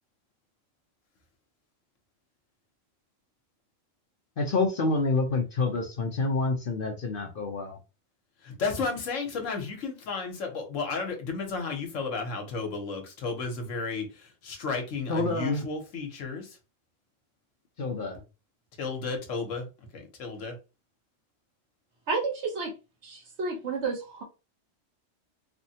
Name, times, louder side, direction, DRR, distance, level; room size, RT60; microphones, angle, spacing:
voice 1, 4.4-7.8 15.1-15.6 17.8-18.2, left 3 dB, 55° left, 0.7 m, -28 dB
voice 2, 8.4-16.6 18.8-20.6, left 4 dB, 75° left, 1.2 m, -33 dB
voice 3, 22.1-22.7 23.0-24.2, right 4 dB, 60° right, 1.1 m, -31 dB
3.4 x 2.1 x 2.7 m
omnidirectional pair, 1.3 m